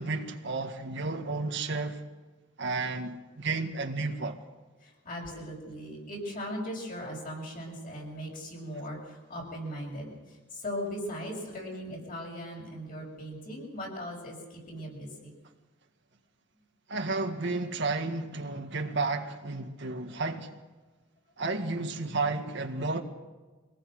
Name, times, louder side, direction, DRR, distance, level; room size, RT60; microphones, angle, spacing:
voice 1, 0.0-2.0 2.6-4.4 16.9-20.6 21.4-23.0, right 3 dB, 60° right, 1.7 m, -32 dB
voice 2, 4.8-15.3, equal, 45° left, 7.3 m, -39 dB
25.0 x 19.0 x 6.5 m
head